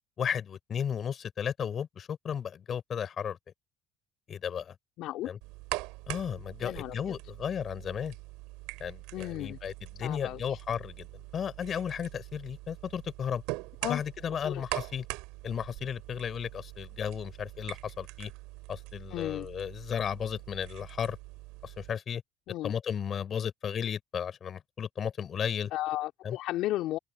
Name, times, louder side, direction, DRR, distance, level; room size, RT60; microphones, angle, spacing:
voice 1, 0.2-3.4 4.3-4.8 5.3-5.4 6.1-8.1 8.8-11.1 11.3-13.4 13.9-15.1 15.4-18.3 18.7-21.2 21.6-22.2 22.6-25.7 26.2-26.4, left 8 dB, 45° left, 5.2 m, -34 dB
voice 2, 5.0-5.3 6.6-6.9 9.1-9.6 10.0-10.6 13.8-14.0 14.4-14.6 19.1-19.5 22.5-22.7 25.7-27.0, left 15 dB, 65° left, 2.9 m, -34 dB
sound 1, 5.4-21.9, right 24 dB, 70° right, 3.7 m, -43 dB
open air
hypercardioid pair, 65°, 0 cm